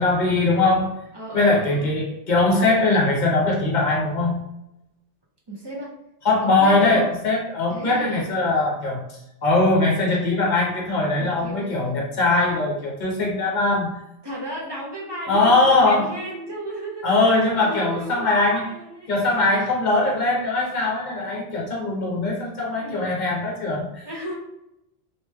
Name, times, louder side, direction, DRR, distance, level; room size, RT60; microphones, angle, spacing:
voice 1, 0.0-1.0 1.3-4.4 6.2-9.0 9.4-14.0 15.3-16.1 17.0-18.6 19.1-24.1, left 2 dB, 45° left, -3 dB, 0.8 m, -21 dB
voice 2, 1.1-1.9 5.5-5.9 6.4-7.0 7.7-8.3 11.2-11.8 14.2-19.7 22.8-23.3 24.0-24.3, right 1 dB, 25° right, -4 dB, 0.6 m, -34 dB
2.9 x 2.9 x 2.3 m, 0.85 s
omnidirectional pair, 1.1 m